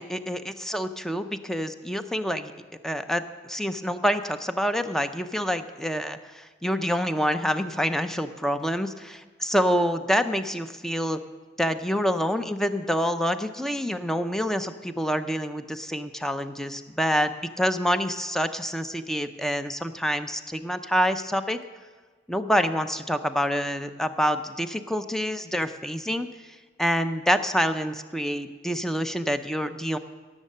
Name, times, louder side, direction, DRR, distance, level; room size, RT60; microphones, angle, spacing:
voice 1, 0.0-2.5 2.8-11.2 11.6-21.6 22.3-26.3 26.8-30.0, equal, 5° left, 9 dB, 0.5 m, -27 dB
17.5 x 7.3 x 6.6 m, 1.5 s
head